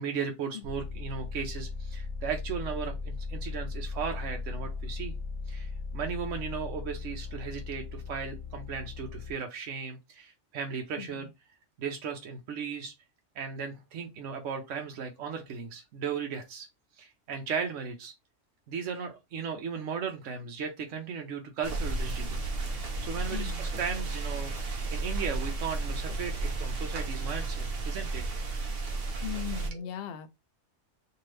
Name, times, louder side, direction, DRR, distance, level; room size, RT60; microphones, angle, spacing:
voice 1, 0.0-5.1 5.5-11.3 11.8-12.9 13.4-16.7 17.0-18.1 18.7-22.4 22.7-28.2 29.7-29.9, right 6 dB, 85° right, 1.0 m, -36 dB
sound 1, 0.6-9.3, left 4 dB, 20° left, 0.8 m, -37 dB
sound 2, 21.6-29.7, right 3 dB, 55° right, 0.9 m, -33 dB
voice 2, 23.3-23.6 29.2-30.3, left 9 dB, 65° left, 0.7 m, -38 dB
2.7 x 2.6 x 3.1 m
omnidirectional pair, 1.2 m